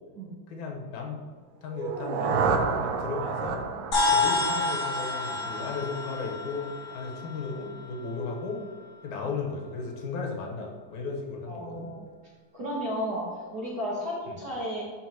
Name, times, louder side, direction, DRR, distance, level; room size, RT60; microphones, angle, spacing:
voice 1, 0.5-1.2 1.6-3.7 4.1-8.6 9.0-11.9 14.3-14.4, left 4 dB, 80° left, 0 dB, 2.4 m, -35 dB
sound 1, 1.7-5.7, right 5 dB, 75° right, 1.8 m, -30 dB
sound 2, 3.9-8.5, left 3 dB, 35° left, 2.9 m, -29 dB
voice 2, 11.5-12.1 12.5-14.8, equal, 50° right, -5 dB, 1.4 m, -33 dB
12.0 x 4.8 x 2.9 m, 1.5 s
omnidirectional pair, 3.4 m